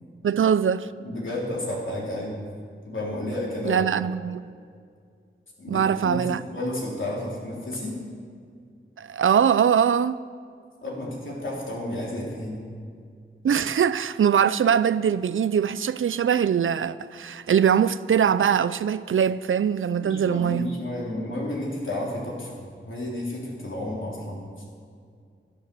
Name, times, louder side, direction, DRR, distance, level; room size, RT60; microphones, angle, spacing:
voice 1, 0.2-0.9 3.7-4.5 5.7-6.4 9.0-10.2 13.4-20.7, right 8 dB, 80° right, 0.4 m, -22 dB
voice 2, 1.0-2.4 2.9-3.8 5.6-8.1 10.8-12.6 20.0-24.5, left 1 dB, 75° left, 3.5 m, -31 dB
13.5 x 10.0 x 6.9 m
wide cardioid pair, 85°, 20 cm